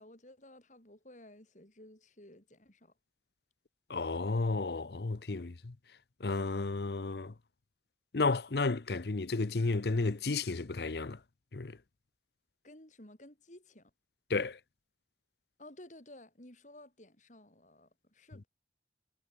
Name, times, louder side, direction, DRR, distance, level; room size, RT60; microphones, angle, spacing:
voice 1, 0.0-2.9 12.6-13.9 15.6-18.5, left 1 dB, 45° left, 4.0 m, -55 dB
voice 2, 3.9-5.7 6.2-7.3 8.1-11.2 11.5-11.7 14.3-14.6, left 3 dB, 65° left, 0.8 m, -32 dB
head